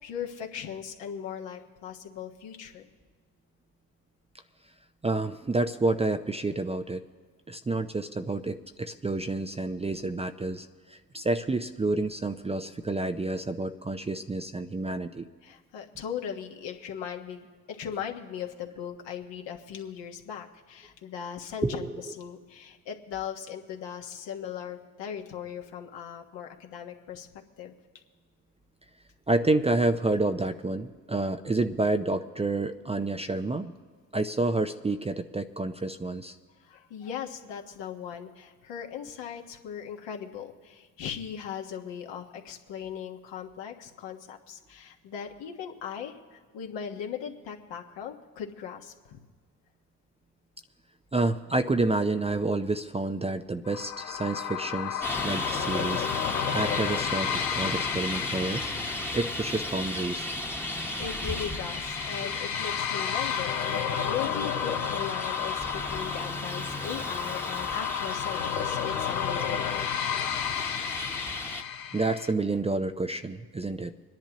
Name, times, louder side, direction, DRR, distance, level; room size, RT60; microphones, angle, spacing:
voice 1, 0.0-2.9 15.4-21.9 22.1-27.3 27.6-27.7 36.6-49.2 60.7-69.8, left 8 dB, 60° left, 2 dB, 1.6 m, -38 dB
voice 2, 5.0-7.0 7.5-15.2 21.6-22.0 29.3-33.7 34.1-36.3 51.1-58.7 59.1-60.3 71.9-73.9, right 2 dB, 15° right, 8 dB, 0.6 m, -29 dB
sound 1, 53.7-72.3, left 9 dB, 85° left, 0.9 m, -32 dB
Traffic noise roadway noise, 55.0-71.6, left 1 dB, 5° left, 1.3 m, -35 dB
26.0 x 10.5 x 3.0 m, 1.5 s
hypercardioid pair, 55°, 48 cm